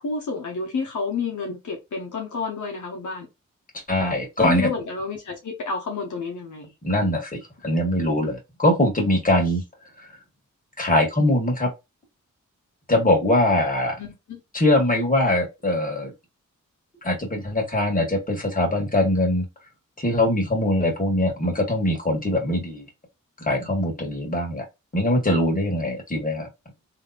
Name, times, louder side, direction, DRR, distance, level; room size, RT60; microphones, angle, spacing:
voice 1, 0.0-3.3 4.4-6.7 14.0-14.4, left 4 dB, 75° left, 1.1 m, -29 dB
voice 2, 3.9-4.7 6.8-9.6 10.8-11.7 12.9-14.0 14.5-16.1 17.0-19.5 20.0-22.9 23.4-24.6 24.9-26.5, left 1 dB, 25° left, 1.7 m, -22 dB
3.3 x 3.0 x 2.5 m
cardioid pair, 50°, 31 cm